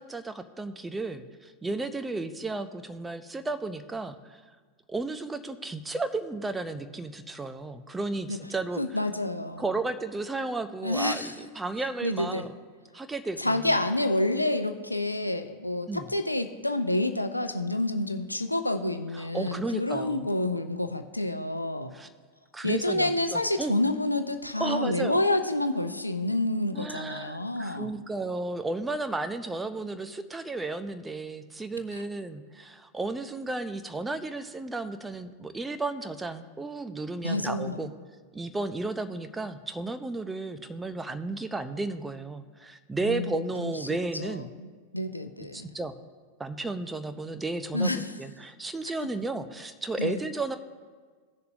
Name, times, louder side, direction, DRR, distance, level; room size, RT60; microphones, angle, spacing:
voice 1, 0.0-4.4 4.9-8.8 9.6-12.6 12.9-13.7 15.9-16.1 19.1-20.3 21.9-22.1 22.5-23.7 24.6-25.2 26.7-37.9 38.3-44.5 45.5-46.0 46.4-50.6, right 3 dB, 10° right, 9 dB, 0.6 m, -33 dB
voice 2, 8.8-9.6 10.8-11.3 12.0-12.4 13.4-21.9 22.6-27.9 31.9-32.0 37.2-37.9 43.0-43.7 44.1-45.7 47.7-48.1 50.0-50.2, left 1 dB, 85° left, 8 dB, 0.5 m, -28 dB
17.0 x 6.8 x 2.6 m, 1.5 s
figure-of-eight pair, 90°, 0 cm